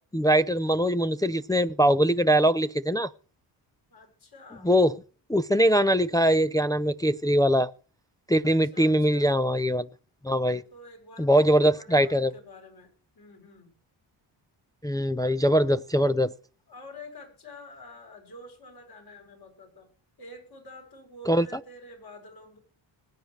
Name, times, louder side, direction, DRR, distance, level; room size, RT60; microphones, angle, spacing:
voice 1, 0.1-3.1 4.6-4.9 5.3-7.7 8.3-9.9 10.2-10.6 11.2-12.3 14.8-16.3 21.3-21.5, equal, 10° left, 0.5 m, -22 dB
voice 2, 3.9-4.7 8.4-9.3 10.4-13.7 16.7-19.9 20.2-22.6, left 1 dB, 50° left, 7.4 m, -48 dB
21.0 x 9.0 x 3.3 m
cardioid pair, 80°, 47 cm